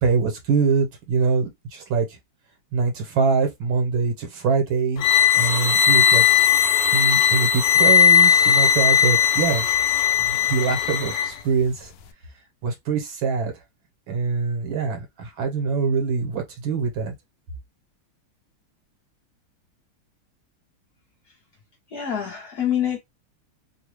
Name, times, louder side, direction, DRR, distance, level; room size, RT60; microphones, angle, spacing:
voice 1, 0.0-2.2 2.7-5.0 5.4-6.2 6.9-9.7 10.3-11.9 12.6-13.5 14.1-17.1, right 5 dB, 70° right, 1.9 m, -24 dB
sound 1, 5.0-11.3, left 8 dB, 75° left, 1.0 m, -18 dB
voice 2, 21.9-23.0, left 9 dB, 55° left, 1.2 m, -25 dB
3.6 x 2.3 x 3.0 m
omnidirectional pair, 2.4 m